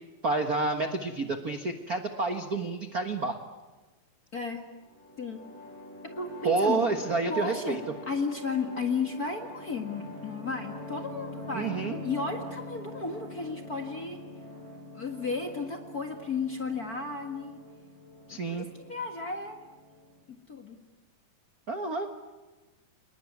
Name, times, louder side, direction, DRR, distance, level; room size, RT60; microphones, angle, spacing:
voice 1, 0.2-3.3 6.4-7.8 11.5-12.0 18.3-18.7 21.7-22.1, right 3 dB, 60° right, 7 dB, 0.9 m, -29 dB
voice 2, 4.3-4.6 5.2-5.4 6.0-6.9 7.3-14.2 14.9-17.6 18.3-19.7 20.3-20.8, left 4 dB, 40° left, 5 dB, 1.4 m, -34 dB
sound 1, 4.8-20.2, left 1 dB, 40° right, 8.4 m, -44 dB
29.0 x 20.5 x 9.6 m, 1.2 s
omnidirectional pair, 4.1 m